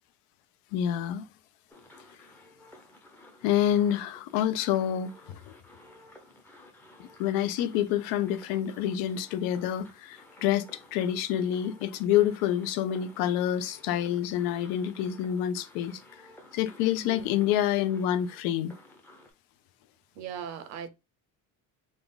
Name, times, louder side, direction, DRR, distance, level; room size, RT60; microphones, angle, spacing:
voice 1, 0.7-1.3 3.4-5.4 7.0-10.6 10.9-16.0 16.5-18.8, left 10 dB, 85° left, 0.6 m, -27 dB
sound 1, 1.7-19.3, left 1 dB, 5° left, 0.5 m, -54 dB
voice 2, 17.0-17.5 20.1-20.9, right 8 dB, 50° right, 0.7 m, -39 dB
3.7 x 2.3 x 3.8 m
cardioid pair, 175°, 35 cm